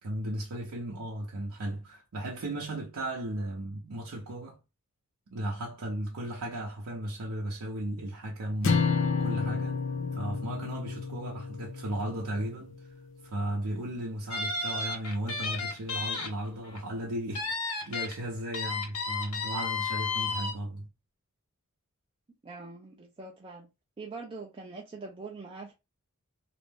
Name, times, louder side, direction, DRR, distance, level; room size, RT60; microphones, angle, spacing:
voice 1, 0.0-4.6 5.3-9.9 10.1-12.8 13.2-20.9, right 1 dB, 85° right, 0.6 m, -35 dB
sound 1, 8.6-13.0, left 5 dB, 55° left, 0.5 m, -31 dB
sound 2, 14.3-16.3 16.6-16.8 17.4-18.1 18.5-20.5, left 4 dB, 80° left, 1.0 m, -32 dB
voice 2, 22.4-23.7 24.0-25.7, right 3 dB, 25° right, 0.3 m, -43 dB
2.5 x 2.1 x 3.3 m
head